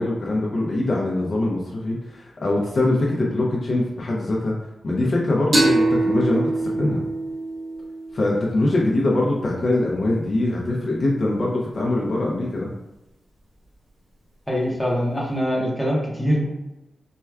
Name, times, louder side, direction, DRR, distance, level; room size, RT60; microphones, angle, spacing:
voice 1, 0.0-4.5 4.8-7.0 8.1-12.7, left 2 dB, 40° left, -4 dB, 0.5 m, -23 dB
sound 1, 5.5-8.9, right 2 dB, 70° right, 1.4 m, -23 dB
voice 2, 14.5-16.4, equal, ahead, -4 dB, 0.7 m, -23 dB
4.4 x 2.2 x 2.3 m, 0.94 s
wide cardioid pair, 170°, 0 cm